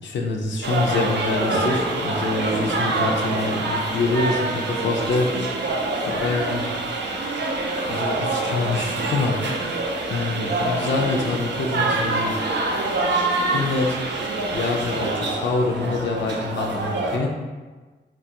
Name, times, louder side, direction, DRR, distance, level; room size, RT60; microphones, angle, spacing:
voice 1, 0.0-5.6 6.0-6.6 7.9-9.4 10.1-12.4 13.5-14.0 14.5-17.3, left 3 dB, 80° left, 0 dB, 0.4 m, -25 dB
sound 1, 0.6-17.2, right 2 dB, 70° right, 0.4 m, -25 dB
2.9 x 2.3 x 2.7 m, 1.3 s
cardioid pair, 50°, 19 cm